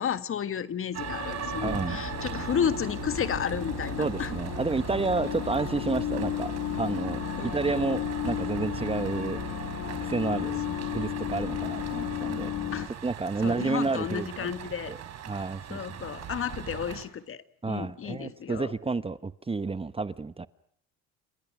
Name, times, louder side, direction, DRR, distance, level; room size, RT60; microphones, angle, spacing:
voice 1, 0.0-4.3 7.4-7.8 10.7-10.9 12.7-12.9 13.4-15.0 15.7-18.7, left 8 dB, 45° left, 1.7 m, -32 dB
sound 1, 0.9-17.0, right 9 dB, 60° right, 4.2 m, -40 dB
sound 2, 1.0-12.9, left 13 dB, 70° left, 2.2 m, -34 dB
voice 2, 1.6-2.0 4.0-6.5 6.8-9.6 10.0-10.6 10.9-12.5 13.0-14.3 14.9-15.0 15.3-16.0 17.6-20.5, right 3 dB, 20° right, 1.0 m, -30 dB
sound 3, 1.8-11.6, right 7 dB, 75° right, 7.4 m, -42 dB
30.0 x 27.0 x 6.2 m
supercardioid pair, 75°, 30 cm